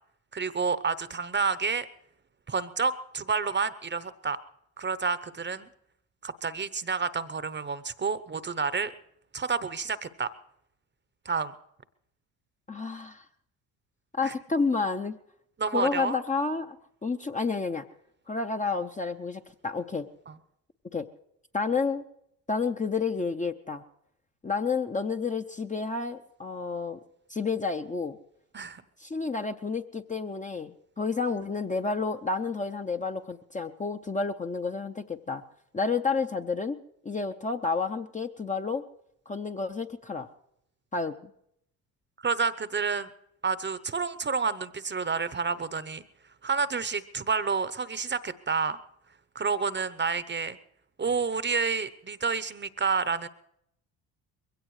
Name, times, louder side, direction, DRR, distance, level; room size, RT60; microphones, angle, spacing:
voice 1, 0.3-1.9 2.5-4.4 4.8-5.7 6.2-8.9 9.3-10.3 11.2-11.5 14.2-14.3 15.6-16.2 28.5-28.8 42.2-43.1 43.4-46.0 46.4-48.8 49.3-50.6 51.0-53.3, right 5 dB, 25° right, 15 dB, 0.9 m, -29 dB
voice 2, 12.7-13.2 14.1-15.2 15.7-16.8 17.0-17.9 18.3-20.1 20.9-21.1 21.5-22.1 22.5-23.8 24.4-27.0 27.3-28.2 29.0-35.4 35.7-36.8 37.0-38.8 39.3-40.3 40.9-41.3, left 4 dB, 15° left, 6 dB, 0.7 m, -30 dB
22.0 x 16.5 x 3.2 m, 0.74 s
hypercardioid pair, 60°, 47 cm